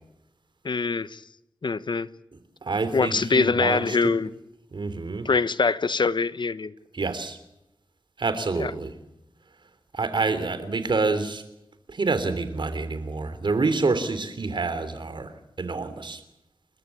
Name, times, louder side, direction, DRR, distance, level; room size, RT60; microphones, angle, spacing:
voice 1, 0.6-1.2 1.6-2.1 2.9-4.3 5.2-6.7 8.6-8.7, left 4 dB, 60° left, 16 dB, 1.1 m, -23 dB
voice 2, 2.3-4.2 4.7-5.3 6.9-7.4 8.2-8.9 9.9-11.4 11.9-16.2, right 3 dB, 65° right, 12 dB, 3.3 m, -27 dB
29.0 x 14.0 x 8.5 m, 0.86 s
cardioid pair, 40°, 9 cm